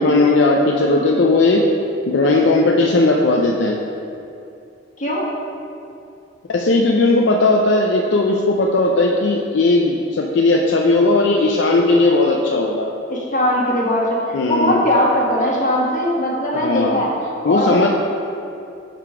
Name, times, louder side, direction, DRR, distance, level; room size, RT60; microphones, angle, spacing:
voice 1, 0.0-1.6 2.1-3.8 6.5-12.9 14.3-14.8 16.5-17.1 17.4-17.9, left 2 dB, 75° left, -1 dB, 0.5 m, -16 dB
voice 2, 5.0-5.3 13.1-17.1 17.5-17.9, equal, 45° left, -4 dB, 1.2 m, -19 dB
5.8 x 4.6 x 4.7 m, 2.6 s
head